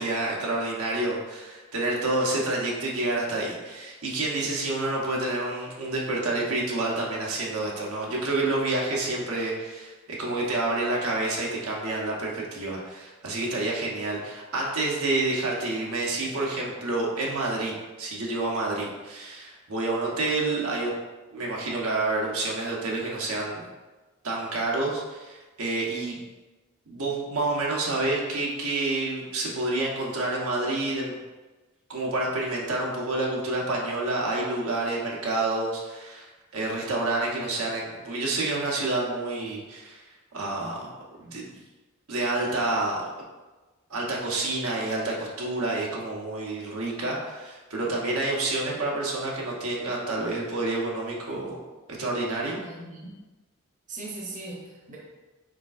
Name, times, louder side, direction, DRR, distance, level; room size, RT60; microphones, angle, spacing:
voice 1, 0.0-20.9 21.3-23.6 24.2-26.2 26.9-31.1 31.9-40.9 41.2-41.4 42.1-43.0 43.9-51.6 52.0-52.6, right 2 dB, 85° right, -3 dB, 1.0 m, -28 dB
voice 2, 52.6-53.2 53.9-55.0, right 2 dB, 35° right, -3 dB, 0.8 m, -39 dB
5.0 x 4.1 x 2.5 m, 1.2 s
head